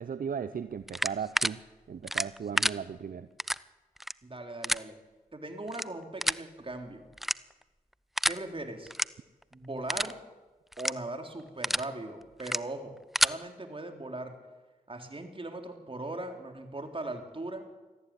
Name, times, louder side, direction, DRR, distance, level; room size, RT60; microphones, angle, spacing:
voice 1, 0.0-1.6 1.9-3.3, right 7 dB, 65° right, 13 dB, 0.7 m, -36 dB
sound 1, 0.9-1.5 2.1-2.7 3.4-3.6 4.0-4.1 4.6-4.8 5.7-5.8 6.2-6.4 7.2-7.6 8.2-8.4 8.9-9.0 9.4-9.5 9.9-10.1 10.7-10.9 11.4-11.8 12.4-12.6 13.0-13.3, equal, ahead, 0.6 m, -28 dB
voice 2, 4.2-5.0 5.3-7.0 8.3-8.9 9.5-10.2 10.8-14.4 14.9-17.6, right 2 dB, 35° right, 5 dB, 3.8 m, -39 dB
18.5 x 14.0 x 9.9 m, 1.2 s
cardioid pair, 45°, 15 cm